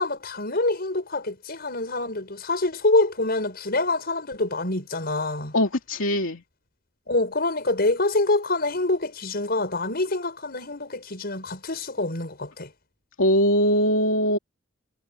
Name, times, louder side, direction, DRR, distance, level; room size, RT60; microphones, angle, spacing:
voice 1, 0.0-5.6 7.1-12.7, left 2 dB, 50° left, 5.8 m, -26 dB
voice 2, 5.5-6.4 13.2-14.4, equal, 70° left, 2.9 m, -21 dB
head